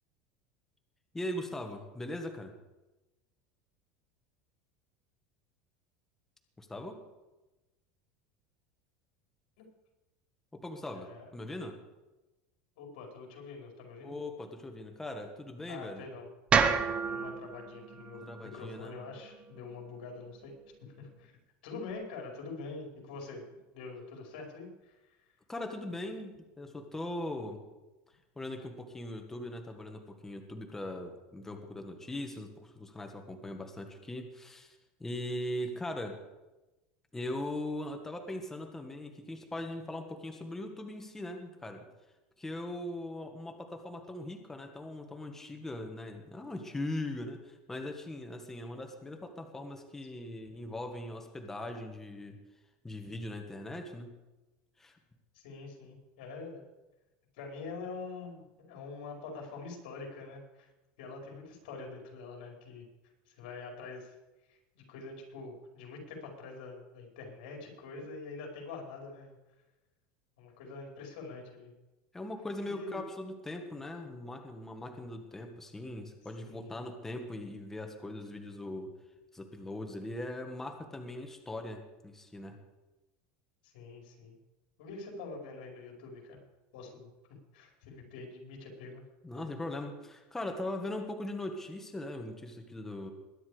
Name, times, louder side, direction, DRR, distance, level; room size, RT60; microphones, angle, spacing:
voice 1, 1.1-2.5 6.6-7.0 10.5-11.8 14.0-16.0 18.1-19.0 25.5-27.6 28.3-36.2 37.1-41.9 42.4-52.4 52.8-54.1 54.8-55.0 72.1-78.9 79.3-82.6 89.2-93.1, left 1 dB, 10° left, 4 dB, 1.5 m, -40 dB
voice 2, 10.9-11.3 12.8-14.1 15.7-16.3 17.0-20.5 20.8-21.4 21.6-23.4 23.7-25.2 50.1-50.4 55.3-56.6 57.4-60.7 61.0-62.8 63.3-64.1 64.5-69.4 70.4-71.7 72.7-73.0 76.5-76.7 83.6-84.4 84.8-86.4 86.7-87.1 87.5-89.0, left 4 dB, 80° left, 1 dB, 4.7 m, -45 dB
sound 1, 16.5-20.7, right 6 dB, 25° right, 0.9 m, -32 dB
21.0 x 10.0 x 5.0 m, 1.1 s
supercardioid pair, 155°, 5 cm